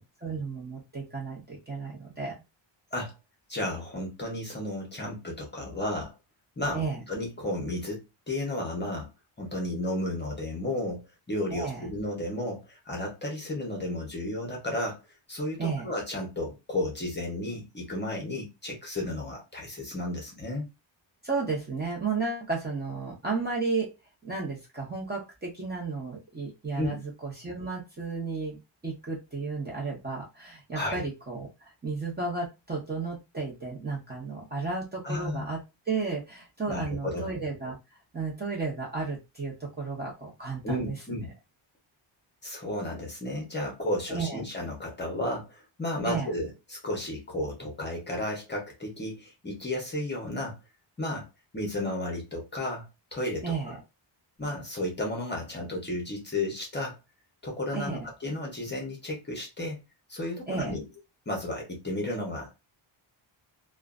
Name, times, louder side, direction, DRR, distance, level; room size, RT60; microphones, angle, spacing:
voice 1, 0.0-2.3 6.7-7.0 11.5-11.9 15.6-15.9 21.2-23.9 24.2-28.6 28.8-35.6 35.9-37.8 38.1-41.0 44.1-44.4 46.1-46.3 53.4-53.8 57.7-58.1 60.5-60.7, right 4 dB, 20° right, 0.7 m, -33 dB
voice 2, 3.5-6.1 6.6-9.1 9.4-15.0 15.3-20.7 26.8-27.0 30.7-31.0 35.0-35.5 36.7-37.3 40.6-41.3 42.4-50.6 51.0-51.3 51.5-53.7 54.4-57.0 57.4-59.8 60.1-60.9 61.3-62.5, left 1 dB, 20° left, 0.7 m, -33 dB
2.4 x 2.2 x 2.4 m
wide cardioid pair, 160°, 49 cm